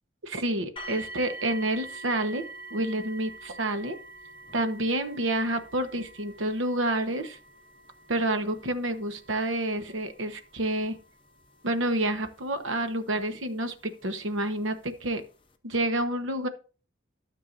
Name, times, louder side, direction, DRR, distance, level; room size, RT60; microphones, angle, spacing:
voice 1, 0.2-2.4 2.7-4.0 4.5-7.4 8.1-11.0 11.6-13.7 14.0-15.2 15.6-16.5, right 1 dB, 90° right, 9 dB, 1.2 m, -29 dB
sound 1, 0.8-13.6 14.5-14.6 15.2-15.3, right 2 dB, 25° left, 0.8 m, -46 dB
12.5 x 6.7 x 2.6 m, 0.36 s
head